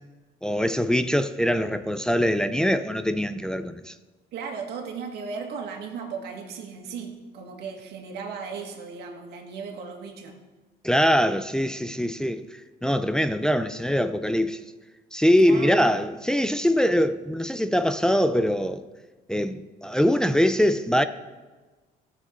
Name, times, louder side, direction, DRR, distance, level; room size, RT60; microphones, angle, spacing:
voice 1, 0.4-3.9 10.8-14.6 15.1-18.8 19.3-21.0, equal, 5° left, 0.4 m, -23 dB
voice 2, 4.3-10.4 15.4-15.9, right 5 dB, 75° right, 1.9 m, -36 dB
16.0 x 6.8 x 3.9 m
cardioid pair, 110°, 17 cm